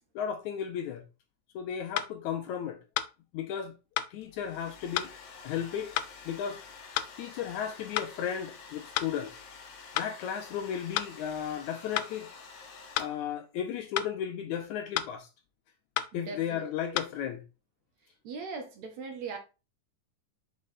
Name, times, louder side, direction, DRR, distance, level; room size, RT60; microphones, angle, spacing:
voice 1, 0.2-1.0 1.6-2.8 3.3-3.8 4.1-5.1 5.4-6.0 6.3-6.6 7.2-9.4 10.0-12.3 13.0-15.3 16.1-17.4, left 8 dB, 75° left, 1.9 m, -34 dB
sound 1, 2.0-2.1 3.0-3.1 4.0-4.1 5.0-5.1 6.0-6.1 7.0-7.1 8.0-8.1 9.0-9.1 10.0-10.1 11.0-11.1 12.0-12.1 13.0-13.1 14.0-14.1 15.0-15.1 16.0-16.1 17.0-17.1, left 13 dB, 90° left, 2.3 m, -30 dB
Domestic sounds home sounds, 4.2-13.4, left 5 dB, 55° left, 2.1 m, -49 dB
voice 2, 16.1-17.0 18.2-19.4, right 4 dB, 65° right, 2.2 m, -40 dB
6.3 x 5.3 x 4.0 m
omnidirectional pair, 3.9 m